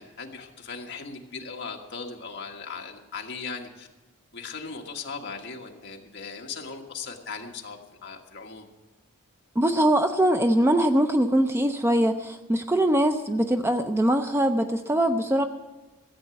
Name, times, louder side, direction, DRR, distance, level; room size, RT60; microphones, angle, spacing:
voice 1, 0.0-3.9 4.3-8.7, left 5 dB, 50° left, 1 dB, 1.6 m, -38 dB
voice 2, 9.6-15.4, right 1 dB, 10° right, 7 dB, 0.5 m, -22 dB
14.5 x 8.1 x 7.7 m, 1.2 s
head